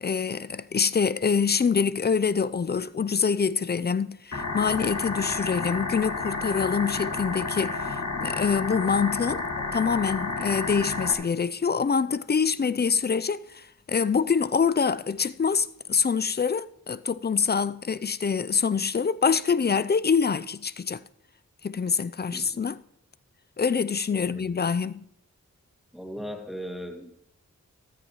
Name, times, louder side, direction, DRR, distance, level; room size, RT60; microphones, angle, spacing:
voice 1, 0.0-9.4 9.7-21.0 21.6-22.8 23.6-25.0, left 6 dB, 35° left, 0.4 m, -25 dB
sound 1, 4.3-11.1, left 3 dB, 60° left, 1.9 m, -31 dB
voice 2, 24.1-24.6 25.9-27.1, equal, ahead, 2.2 m, -38 dB
14.0 x 13.0 x 3.0 m
cardioid pair, 50°, 30 cm